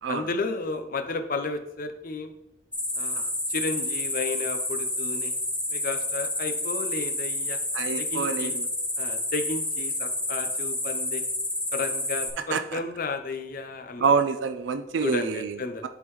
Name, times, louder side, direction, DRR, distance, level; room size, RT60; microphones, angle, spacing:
voice 1, 0.1-2.3 3.0-3.2 3.5-5.3 5.7-7.6 8.0-8.6 9.0-11.2 11.7-14.1 15.0-15.8, left 3 dB, 50° left, 7 dB, 0.7 m, -33 dB
sound 1, 2.7-12.3, left 1 dB, 10° left, 1.2 m, -29 dB
voice 2, 7.7-8.7 12.5-12.8 14.0-15.9, right 5 dB, 85° right, 8 dB, 0.4 m, -27 dB
10.5 x 3.8 x 3.1 m, 0.85 s
head